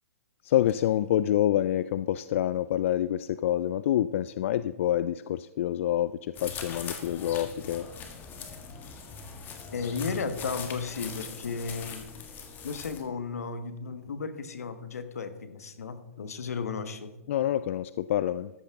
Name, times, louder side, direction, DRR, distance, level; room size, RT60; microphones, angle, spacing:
voice 1, 0.4-7.9 17.3-18.5, left 12 dB, 60° left, 0.3 m, -27 dB
sound 1, 6.3-13.0, left 6 dB, 25° left, 1.5 m, -41 dB
voice 2, 9.7-12.1 12.6-17.1, left 5 dB, 80° left, 1.2 m, -34 dB
13.5 x 10.0 x 3.6 m
hypercardioid pair, 135°, 8 cm